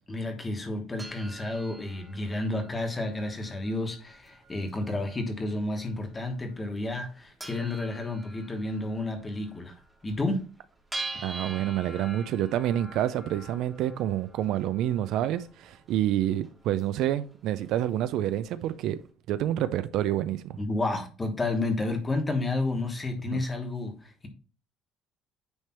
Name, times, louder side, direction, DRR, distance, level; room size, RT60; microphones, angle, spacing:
voice 1, 0.1-9.7 10.0-10.4 20.6-24.3, left 2 dB, 15° left, 1.2 m, -31 dB
sound 1, 1.0-18.9, right 2 dB, 10° right, 1.2 m, -46 dB
voice 2, 11.2-19.0 19.3-20.6 23.3-23.4, right 12 dB, 55° right, 0.4 m, -28 dB
9.4 x 3.3 x 4.3 m
cardioid pair, 180°, 0 cm